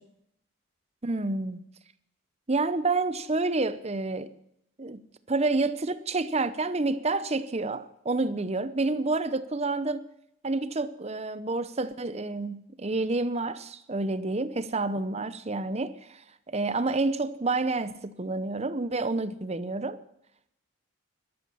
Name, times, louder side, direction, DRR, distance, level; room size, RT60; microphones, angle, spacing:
voice 1, 1.0-1.6 2.5-4.3 4.8-10.1 10.4-16.0 16.5-20.0, right 3 dB, 30° right, 0.7 m, -29 dB
13.5 x 12.5 x 7.1 m
head